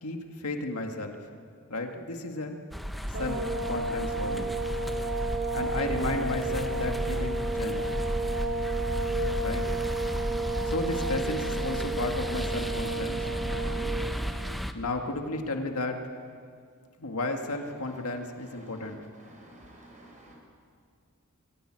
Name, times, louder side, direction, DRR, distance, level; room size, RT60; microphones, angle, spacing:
voice 1, 0.0-1.2 1.7-2.6 3.1-4.6 5.5-7.9 9.4-9.7 10.6-13.3 14.7-16.1 17.0-19.0, left 2 dB, 80° left, 3 dB, 2.0 m, -33 dB
sound 1, 2.7-14.7, equal, ahead, 1.0 m, -33 dB
sound 2, 3.1-14.2, right 2 dB, 55° right, 3.5 m, -32 dB
voice 2, 19.2-20.4, right 1 dB, 35° right, 0 dB, 6.0 m, -52 dB
23.5 x 15.5 x 8.9 m, 2.2 s
head